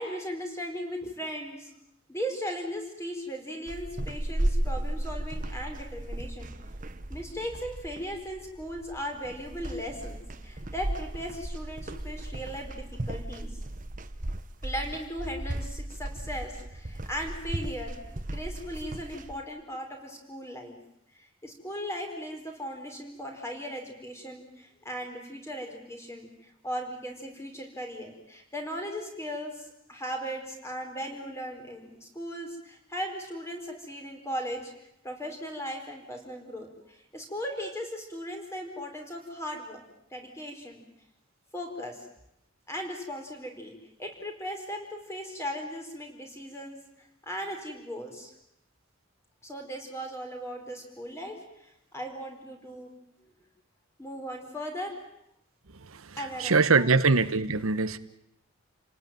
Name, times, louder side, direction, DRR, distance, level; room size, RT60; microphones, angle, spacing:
voice 1, 0.0-1.7 2.1-6.5 7.1-13.6 14.6-18.0 18.3-20.8 21.1-34.7 35.0-39.8 40.1-40.8 41.5-42.0 42.7-43.7 44.0-48.3 49.4-52.9 54.0-55.0 56.2-56.9, equal, 15° left, 3 dB, 4.7 m, -37 dB
sound 1, 3.7-19.4, right 1 dB, 40° right, 1.2 m, -35 dB
voice 2, 56.4-58.0, right 4 dB, 80° right, 11 dB, 1.1 m, -22 dB
29.5 x 19.0 x 9.3 m, 0.82 s
head